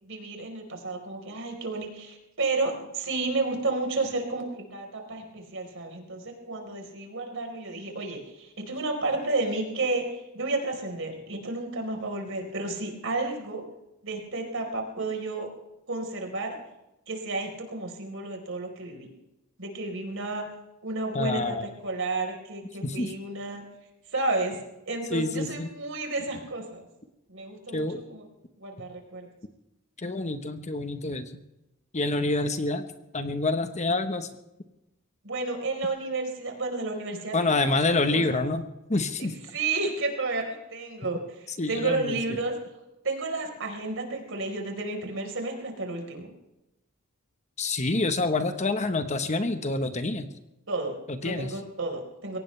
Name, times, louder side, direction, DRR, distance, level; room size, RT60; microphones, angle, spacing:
voice 1, 0.0-13.6 14.0-15.5 15.9-16.6 17.1-19.1 19.6-20.4 20.8-23.6 24.1-24.6 24.9-26.9 27.3-28.2 28.6-29.3 35.2-38.4 39.2-42.5 43.0-46.3 50.7-50.9 51.2-52.4, right 3 dB, 65° right, 3 dB, 4.4 m, -32 dB
voice 2, 21.1-21.7 22.8-23.1 25.1-25.7 27.7-28.0 30.0-31.4 31.9-32.8 33.1-34.3 37.3-38.6 38.9-39.3 41.6-42.2 47.6-50.3 51.1-51.5, left 2 dB, 35° left, 8 dB, 1.2 m, -27 dB
22.5 x 18.0 x 3.4 m, 0.92 s
head